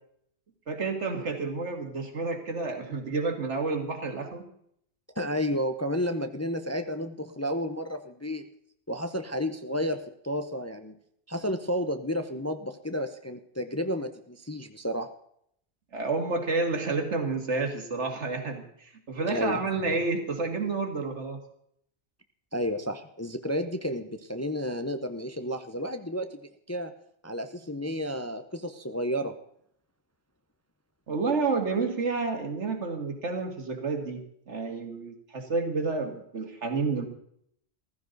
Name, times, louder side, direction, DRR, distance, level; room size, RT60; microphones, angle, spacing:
voice 1, 0.7-4.5 15.9-21.4 31.1-34.2 34.5-37.1, right 3 dB, 75° right, 5 dB, 2.2 m, -30 dB
voice 2, 5.2-8.4 8.9-10.9 11.3-15.1 19.3-19.6 22.5-26.4 26.7-26.9 27.2-29.3, equal, 15° left, 8 dB, 0.6 m, -31 dB
15.0 x 14.5 x 4.0 m, 0.70 s
omnidirectional pair, 1.2 m